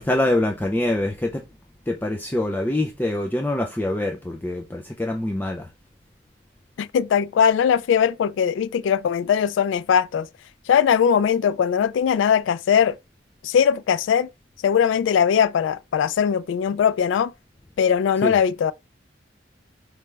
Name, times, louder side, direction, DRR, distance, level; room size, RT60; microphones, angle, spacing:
voice 1, 0.0-1.4 1.9-5.7 18.2-18.4, left 1 dB, 10° left, 0.4 m, -24 dB
voice 2, 6.8-10.3 10.7-13.0 13.4-14.3 14.6-17.3 17.8-18.7, left 7 dB, 90° left, 0.3 m, -20 dB
4.9 x 3.2 x 3.3 m
head